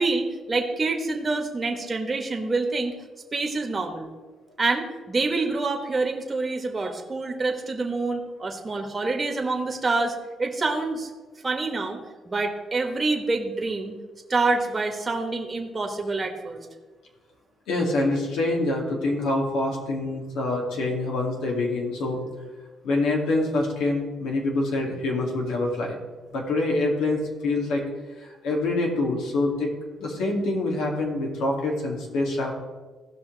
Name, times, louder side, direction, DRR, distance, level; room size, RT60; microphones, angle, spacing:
voice 1, 0.0-2.9 3.3-4.1 4.6-11.1 11.4-14.0 14.3-16.6, right 3 dB, 25° right, 2 dB, 1.3 m, -27 dB
voice 2, 17.7-22.2 22.8-26.0 26.3-27.8 28.2-29.7 30.0-32.5, left 2 dB, 90° left, 0 dB, 2.3 m, -25 dB
16.0 x 5.7 x 4.0 m, 1.3 s
cardioid pair, 90°, 0 cm